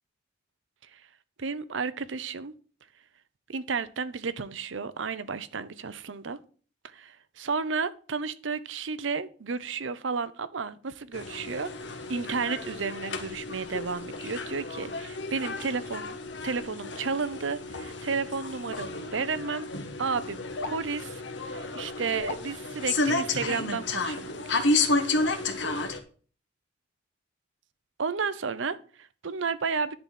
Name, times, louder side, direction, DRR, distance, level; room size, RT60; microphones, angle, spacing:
voice 1, 1.4-2.5 3.5-6.4 6.8-11.7 12.1-16.2 16.4-19.7 20.0-24.7 28.0-30.0, right 5 dB, 75° right, 0.7 m, -32 dB
sound 1, 11.1-26.0, left 2 dB, 65° left, 1.3 m, -31 dB
10.5 x 4.1 x 7.5 m
head